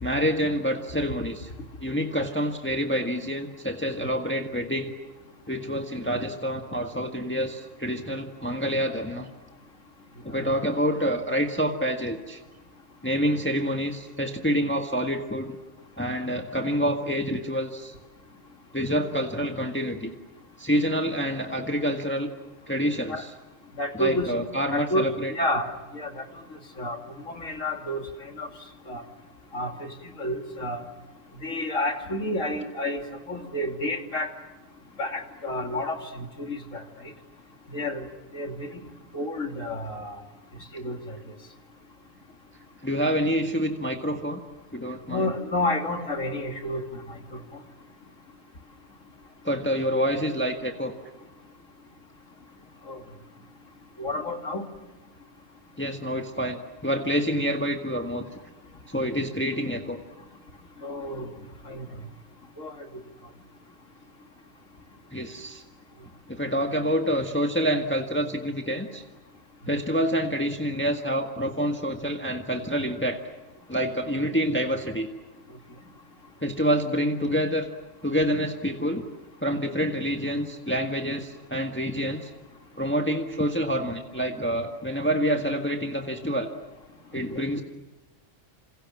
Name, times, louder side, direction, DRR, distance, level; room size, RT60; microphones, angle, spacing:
voice 1, 0.0-1.5 1.8-4.9 5.5-9.3 10.2-12.4 13.0-15.6 16.0-17.9 18.7-20.1 20.6-22.3 22.7-23.3 23.9-25.3 42.8-44.4 44.7-45.3 49.4-50.9 55.8-58.3 58.9-60.0 65.1-65.6 66.3-69.0 69.7-73.2 73.7-75.1 76.4-77.6 78.0-79.1 79.4-82.3 82.8-86.5 87.1-87.6, equal, 10° left, 4 dB, 1.6 m, -27 dB
voice 2, 23.8-24.3 24.7-26.2 26.8-27.0 27.3-28.5 28.9-29.0 29.5-29.9 30.2-30.8 31.4-33.0 33.3-34.3 35.0-36.8 37.7-38.1 38.3-38.7 39.1-40.2 40.7-41.2 45.1-47.4 52.9-53.0 54.0-54.6 60.8-61.3 61.7-61.9 62.6-62.7 87.3-87.4, left 1 dB, 90° left, 4 dB, 3.1 m, -30 dB
28.0 x 27.5 x 7.4 m, 1.1 s
omnidirectional pair, 1.3 m